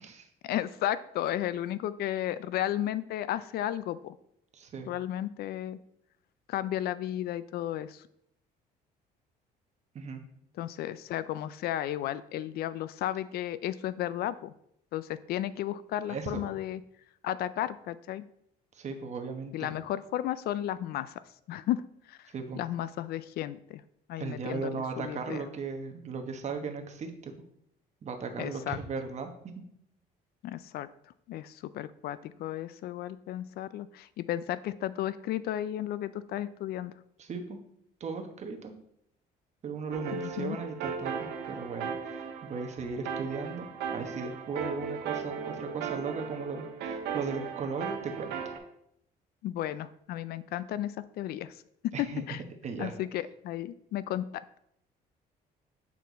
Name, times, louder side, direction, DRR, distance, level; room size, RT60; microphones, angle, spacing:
voice 1, 0.4-4.2 4.9-5.8 6.5-8.0 10.6-14.5 14.9-16.8 17.2-18.2 19.5-21.8 22.1-22.3 22.5-23.8 24.1-25.4 28.4-28.8 30.4-30.9 31.3-36.9 40.1-40.6 49.4-51.6 52.3-52.4 52.8-54.6, left 12 dB, 70° left, 16 dB, 0.4 m, -34 dB
voice 2, 4.5-4.9 9.9-10.2 16.1-16.5 18.7-19.7 22.3-22.6 24.2-27.3 28.0-29.3 37.2-37.6 38.0-38.7 39.6-48.4 51.9-52.2 52.6-52.9, right 5 dB, 40° right, 4 dB, 1.1 m, -37 dB
sound 1, 39.9-48.6, right 6 dB, 85° right, 1.1 m, -37 dB
8.2 x 4.4 x 4.0 m, 0.74 s
cardioid pair, 110°, 17 cm